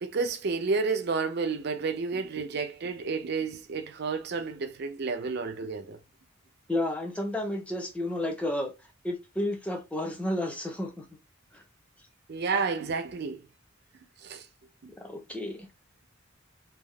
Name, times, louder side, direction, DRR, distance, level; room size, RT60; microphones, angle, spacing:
voice 1, 0.0-6.0 12.3-13.4 14.2-14.4, right 4 dB, 55° right, 0.5 m, -30 dB
voice 2, 6.7-8.7 9.0-11.1 11.5-11.6 15.0-15.7, left 1 dB, 5° left, 0.7 m, -31 dB
3.3 x 2.4 x 2.3 m
head